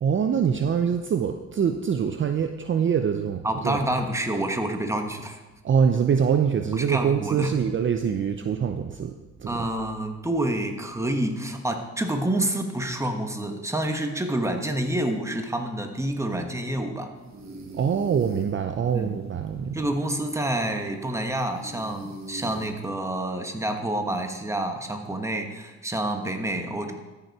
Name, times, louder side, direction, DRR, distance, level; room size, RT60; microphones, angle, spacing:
voice 1, 0.0-3.8 5.6-9.1 9.4-9.7 17.8-19.8, right 7 dB, 40° right, 7 dB, 0.6 m, -24 dB
voice 2, 3.4-5.4 6.7-7.6 9.5-17.1 18.9-19.2 19.7-26.9, right 1 dB, 10° right, 5 dB, 1.3 m, -28 dB
sound 1, 17.2-22.9, right 2 dB, 65° right, 1.8 m, -43 dB
13.5 x 6.8 x 4.7 m, 1.1 s
cardioid pair, 90°, 30 cm